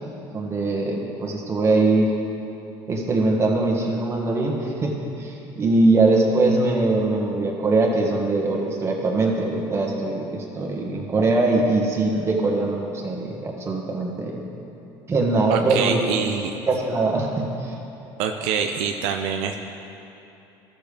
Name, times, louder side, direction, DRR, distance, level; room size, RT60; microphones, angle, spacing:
voice 1, 0.3-2.1 2.9-4.9 5.2-14.4 15.1-16.0 16.7-17.7, right 2 dB, 30° right, -1 dB, 1.5 m, -22 dB
voice 2, 15.5-16.6 18.2-19.6, right 7 dB, 80° right, 4 dB, 0.5 m, -25 dB
13.5 x 6.8 x 3.4 m, 2.9 s
cardioid pair, 115°, 10 cm